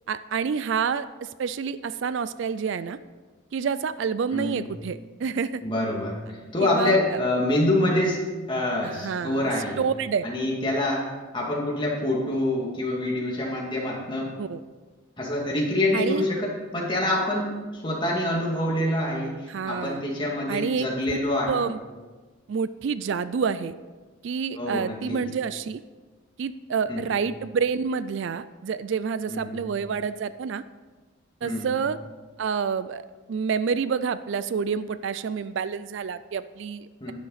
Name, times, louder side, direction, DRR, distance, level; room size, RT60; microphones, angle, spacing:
voice 1, 0.1-3.0 3.5-5.6 6.6-7.2 8.8-9.5 9.8-10.3 14.4-14.6 15.9-16.3 19.5-20.0 20.5-21.2 21.5-21.8 22.5-23.7 24.2-25.8 26.4-30.6 31.4-32.0 32.4-37.1, right 6 dB, 60° right, 15 dB, 0.3 m, -28 dB
voice 2, 5.6-9.8 10.2-11.0 11.3-14.3 15.2-16.5 16.7-21.7 24.6-25.2 26.9-27.1 29.3-29.6 31.4-31.7 37.0-37.1, left 1 dB, 25° left, -3 dB, 2.3 m, -26 dB
11.5 x 10.5 x 4.1 m, 1.3 s
head